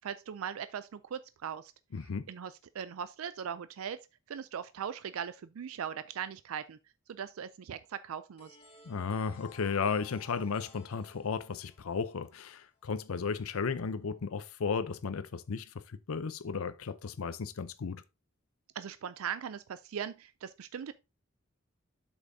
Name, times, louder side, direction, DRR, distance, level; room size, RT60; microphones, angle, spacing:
voice 1, 0.0-1.7 2.3-4.0 4.3-6.8 7.1-8.6 18.8-20.9, right 8 dB, 85° right, 0.4 m, -39 dB
voice 2, 1.9-2.3 8.9-18.0, left 5 dB, 90° left, 0.6 m, -34 dB
sound 1, 8.4-13.0, left 5 dB, 25° left, 1.7 m, -57 dB
8.2 x 7.2 x 2.7 m
head